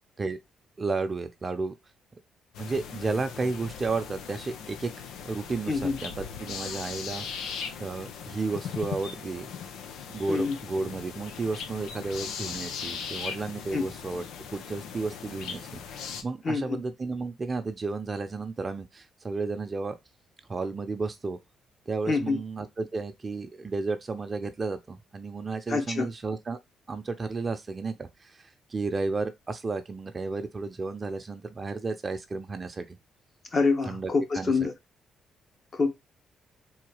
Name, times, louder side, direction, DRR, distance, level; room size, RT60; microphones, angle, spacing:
voice 1, 0.8-1.7 2.6-4.9 5.2-7.4 7.8-9.5 10.1-14.2 14.5-20.0 20.5-21.4 21.9-26.6 26.9-33.0 33.8-34.5, right 3 dB, 30° right, 0.7 m, -33 dB
sound 1, 2.5-16.2, left 7 dB, 85° left, 0.7 m, -39 dB
voice 2, 5.7-6.0 10.3-10.6 13.7-13.9 16.4-16.8 22.1-22.4 25.7-26.1 33.5-34.7 35.7-35.9, left 4 dB, 45° left, 1.3 m, -26 dB
3.9 x 2.8 x 4.7 m
cardioid pair, 90°, 0 cm